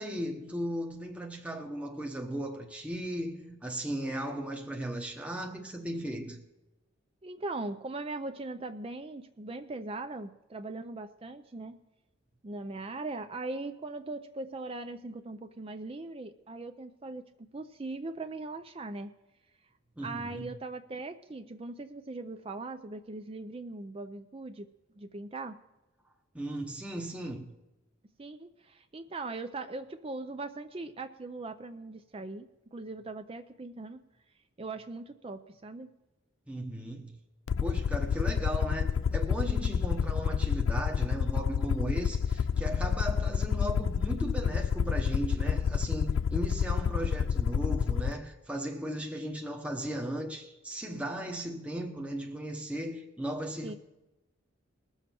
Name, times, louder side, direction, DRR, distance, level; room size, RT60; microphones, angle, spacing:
voice 1, 0.0-6.4 20.0-20.5 26.3-27.5 36.5-37.2 37.6-53.8, right 1 dB, 5° right, 0.9 m, -36 dB
voice 2, 7.2-11.8 12.4-19.1 20.0-24.7 24.9-25.6 28.2-34.0 34.6-35.9 53.6-53.7, right 2 dB, 25° right, 0.4 m, -40 dB
Aircraft, 37.5-48.1, left 7 dB, 70° left, 0.4 m, -29 dB
20.5 x 7.2 x 4.4 m
head